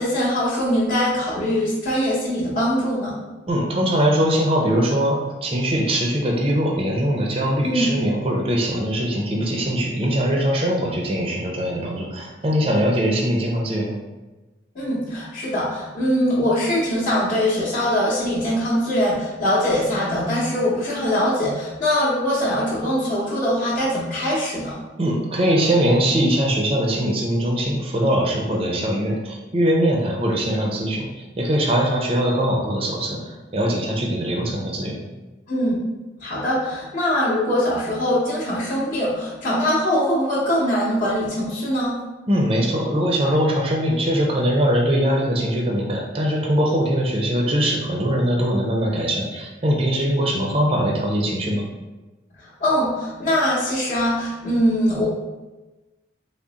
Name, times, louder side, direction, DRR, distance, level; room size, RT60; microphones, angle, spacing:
voice 1, 0.0-3.2 7.6-7.9 14.7-24.8 35.5-35.8 36.2-41.9 52.4-55.1, equal, 40° left, -10 dB, 0.7 m, -22 dB
voice 2, 3.5-14.0 25.0-31.1 31.4-33.2 33.5-35.0 42.3-51.6, equal, 30° right, -1 dB, 0.5 m, -21 dB
3.5 x 2.0 x 3.9 m, 1.1 s
head